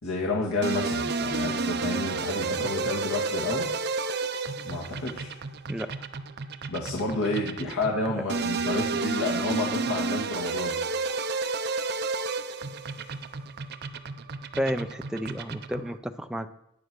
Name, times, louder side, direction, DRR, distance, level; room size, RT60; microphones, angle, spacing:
voice 1, 0.0-3.7 4.6-5.4 6.7-10.8, left 2 dB, 75° left, -2 dB, 1.9 m, -30 dB
sound 1, 0.6-16.0, right 3 dB, 50° right, 0.7 m, -31 dB
voice 2, 14.6-16.6, equal, 5° right, 7 dB, 0.5 m, -31 dB
10.5 x 8.8 x 6.2 m, 0.85 s
head